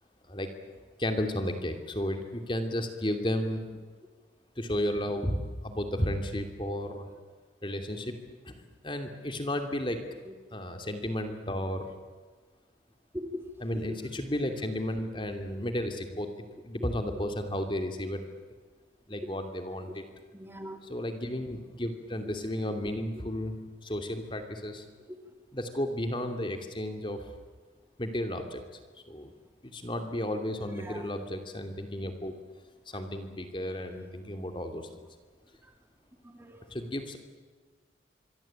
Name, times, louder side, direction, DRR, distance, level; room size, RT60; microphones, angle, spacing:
voice 1, 1.0-3.7 4.6-7.1 7.6-8.1 8.4-10.0 10.5-11.9 13.6-18.2 19.1-20.0 20.8-24.8 25.5-27.3 28.0-28.6 29.1-29.3 29.6-32.3 32.9-34.9 36.7-37.2, left 1 dB, 25° left, 6 dB, 2.8 m, -33 dB
voice 2, 13.1-14.0 20.3-20.8 30.8-31.1 36.2-36.7, left 1 dB, 10° right, 5 dB, 2.3 m, -40 dB
26.0 x 24.0 x 8.9 m, 1.4 s
head